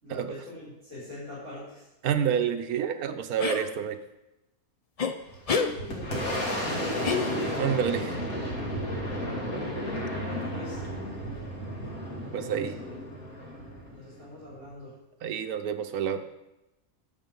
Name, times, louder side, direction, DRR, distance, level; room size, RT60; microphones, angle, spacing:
voice 1, 0.0-1.9 5.5-7.2 9.9-10.8 12.3-12.9 13.9-14.9, left 1 dB, 55° right, -10 dB, 4.7 m, -43 dB
voice 2, 2.0-4.0 7.6-8.1 12.3-12.8 15.2-16.2, right 8 dB, 85° right, 9 dB, 1.3 m, -28 dB
sound 1, 3.4-3.7 5.0-5.1 5.5-5.7 7.0-7.7, left 5 dB, 45° left, 0.4 m, -28 dB
Boom, 5.2-14.6, equal, 80° left, 2.6 m, -33 dB
11.0 x 7.5 x 5.3 m, 0.95 s
omnidirectional pair, 1.5 m